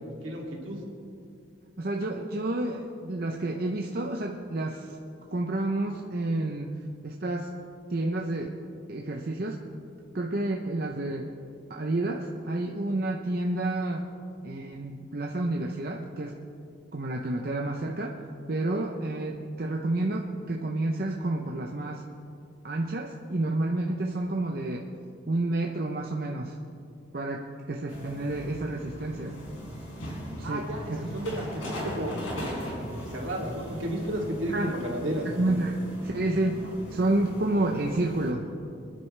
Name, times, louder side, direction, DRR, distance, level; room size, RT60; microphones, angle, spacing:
voice 1, 0.2-0.8 10.4-10.5 30.4-35.3, right 1 dB, 75° right, -2 dB, 2.7 m, -33 dB
voice 2, 1.8-5.0 5.3-6.8 7.0-7.5 7.9-8.5 8.9-9.6 10.1-11.3 11.7-14.1 14.4-16.4 16.9-18.2 18.5-22.0 22.6-24.9 25.3-26.6 27.1-29.4 30.4-31.1 34.5-34.7 35.4-38.5, right 2 dB, 50° right, 1 dB, 0.7 m, -30 dB
sound 1, 27.9-38.3, equal, 90° left, 4.0 m, -39 dB
26.5 x 10.5 x 3.3 m, 2.5 s
head